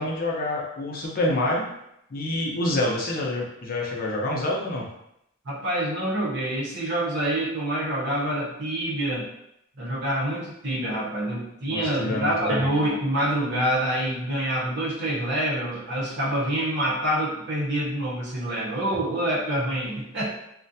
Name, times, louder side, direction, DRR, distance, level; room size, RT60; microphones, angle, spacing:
voice 1, 0.0-1.7 2.1-4.9 11.7-12.6, left 1 dB, 45° left, -2 dB, 0.5 m, -27 dB
voice 2, 5.4-9.3 9.8-20.3, right 1 dB, 55° right, -5 dB, 0.7 m, -26 dB
2.4 x 2.1 x 2.6 m, 0.78 s
head